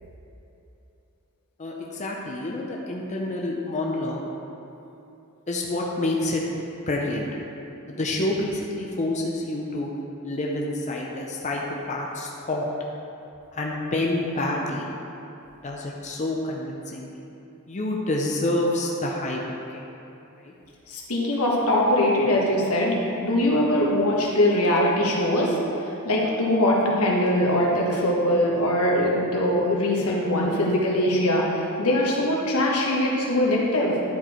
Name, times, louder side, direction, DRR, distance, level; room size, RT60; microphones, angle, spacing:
voice 1, 1.6-4.2 5.5-6.4 6.9-7.3 7.9-9.9 10.2-12.6 13.5-14.9 15.6-17.1 17.7-19.4 19.7-19.8 20.4-20.5, left 1 dB, 35° left, -2 dB, 0.6 m, -28 dB
voice 2, 20.9-25.6 26.0-33.9, left 1 dB, 80° left, -3 dB, 1.4 m, -22 dB
10.5 x 4.5 x 4.4 m, 2.9 s
head